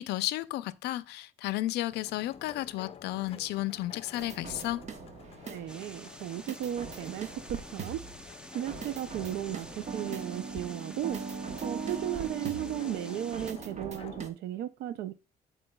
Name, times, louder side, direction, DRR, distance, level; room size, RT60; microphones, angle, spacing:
voice 1, 0.0-4.8, left 16 dB, 80° left, 0.4 m, -33 dB
sound 1, 1.9-14.3, left 7 dB, 35° left, 0.6 m, -51 dB
sound 2, 4.2-6.0 6.5-8.2 8.7-14.3, right 5 dB, 40° right, 1.0 m, -40 dB
voice 2, 5.5-8.0 8.5-11.2 11.6-15.1, right 11 dB, 75° right, 0.5 m, -35 dB
sound 3, 5.7-13.5, equal, 5° right, 0.7 m, -49 dB
11.5 x 4.4 x 2.2 m
cardioid pair, 110°, 17 cm